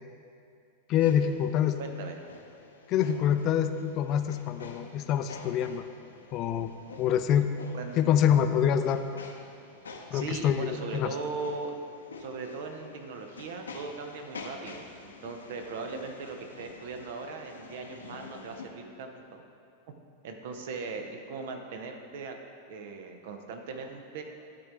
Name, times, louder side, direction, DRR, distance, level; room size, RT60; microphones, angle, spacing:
voice 1, 0.9-1.8 2.9-5.8 6.3-6.7 7.0-7.5 8.0-9.0 10.1-11.1, left 9 dB, 35° left, 9 dB, 0.4 m, -26 dB
sound 1, 1.0-18.7, left 4 dB, 70° left, 0.7 m, -49 dB
voice 2, 1.8-2.2 7.7-8.1 10.1-11.7 12.2-14.9 15.2-19.4 20.2-22.4 22.7-24.2, right 4 dB, 55° right, 4 dB, 0.7 m, -39 dB
11.0 x 3.8 x 4.5 m, 2.4 s
figure-of-eight pair, 90°, 0 cm